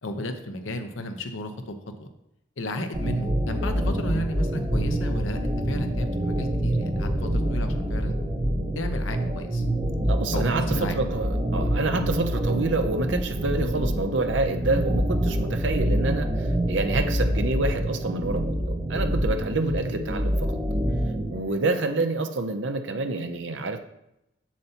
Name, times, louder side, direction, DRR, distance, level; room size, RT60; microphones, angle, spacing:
voice 1, 0.0-2.1 2.6-8.2 8.7-9.6 10.3-11.0, left 1 dB, 85° left, 6 dB, 0.8 m, -33 dB
sound 1, 2.9-21.4, right 1 dB, 25° right, 0.9 m, -26 dB
voice 2, 10.1-20.6 21.3-23.8, right 2 dB, 70° right, 7 dB, 0.6 m, -28 dB
7.4 x 6.8 x 2.9 m, 0.86 s
head